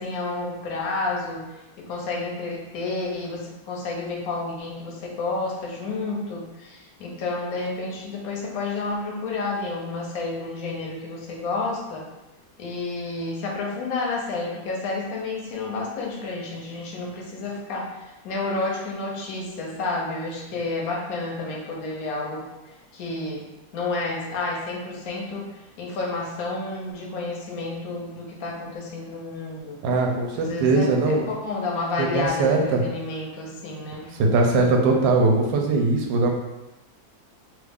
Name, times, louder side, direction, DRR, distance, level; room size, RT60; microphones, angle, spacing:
voice 1, 0.0-12.1 12.6-23.4 23.7-29.8 30.3-34.2, left 3 dB, 65° left, -2 dB, 1.0 m, -30 dB
voice 2, 29.8-31.2 32.0-32.8 34.2-36.3, right 3 dB, 75° right, 1 dB, 1.2 m, -20 dB
3.2 x 2.4 x 3.4 m, 1.0 s
omnidirectional pair, 2.1 m